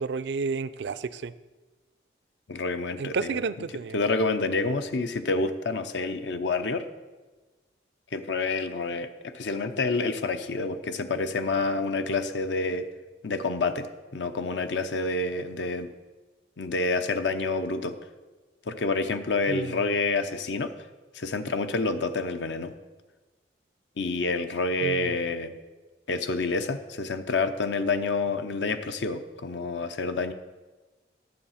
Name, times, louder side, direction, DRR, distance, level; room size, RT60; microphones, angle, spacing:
voice 1, 0.0-1.3 3.0-4.0 19.5-19.7 24.8-25.2, right 4 dB, 75° right, 15 dB, 0.4 m, -31 dB
voice 2, 2.5-3.7 3.9-6.8 8.1-12.9 13.2-13.9 14.1-15.9 16.6-17.9 18.7-20.7 21.1-22.7 24.0-25.5 26.1-30.3, left 3 dB, 85° left, 9 dB, 0.7 m, -28 dB
10.5 x 7.2 x 5.7 m, 1.2 s
head